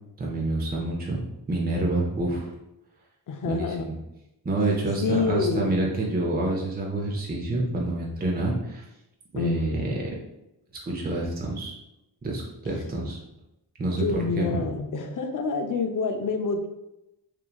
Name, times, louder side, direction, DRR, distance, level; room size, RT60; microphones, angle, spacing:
voice 1, 0.2-1.2 1.5-2.5 3.4-4.0 4.4-8.8 9.3-10.1 10.9-11.7 12.2-13.2 13.8-14.6, right 2 dB, 20° right, -2 dB, 0.6 m, -27 dB
voice 2, 3.3-3.8 5.0-5.8 9.3-9.9 14.0-16.7, left 4 dB, 50° left, 5 dB, 0.5 m, -27 dB
3.0 x 2.2 x 2.3 m, 0.89 s
cardioid pair, 45°, 42 cm